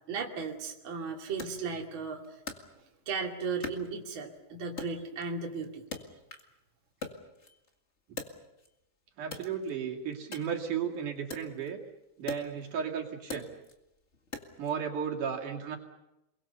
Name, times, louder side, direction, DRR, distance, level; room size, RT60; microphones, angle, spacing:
voice 1, 0.1-2.2 3.1-5.8, right 5 dB, 40° right, 0 dB, 2.9 m, -35 dB
Wood, 1.4-3.2 3.6-4.4 4.8-6.6 6.9-8.8 9.2-14.8, left 4 dB, 25° left, 1.8 m, -44 dB
voice 2, 9.2-11.8 12.2-13.5 14.6-15.8, right 7 dB, 70° right, 0 dB, 3.9 m, -34 dB
29.0 x 22.5 x 6.9 m, 0.91 s
omnidirectional pair, 3.8 m